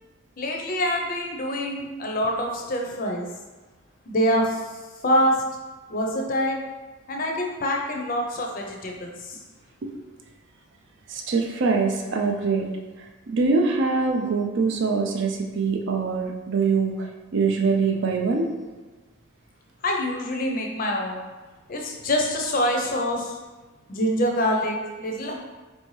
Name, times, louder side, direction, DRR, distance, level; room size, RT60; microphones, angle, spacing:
voice 1, 0.4-3.3 4.1-4.6 5.0-5.4 5.9-6.6 7.1-9.4 19.8-21.2 21.7-23.4 23.9-25.4, equal, 40° left, 1 dB, 0.5 m, -25 dB
voice 2, 11.1-12.7 13.3-18.5, right 4 dB, 55° right, 2 dB, 0.4 m, -23 dB
4.3 x 2.7 x 3.1 m, 1.2 s
head